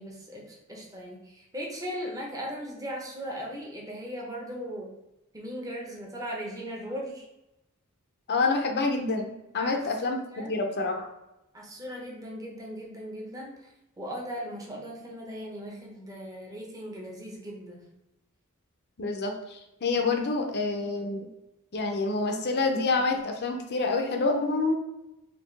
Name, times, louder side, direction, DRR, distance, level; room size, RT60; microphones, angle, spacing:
voice 1, 0.0-4.9 5.3-7.2 9.6-9.8 10.3-10.5 11.5-13.7 14.0-17.8, equal, 15° right, -2 dB, 0.8 m, -38 dB
voice 2, 8.3-11.1 19.0-21.3 21.7-24.8, left 3 dB, 50° left, 3 dB, 0.6 m, -27 dB
4.2 x 2.7 x 3.2 m, 0.93 s
head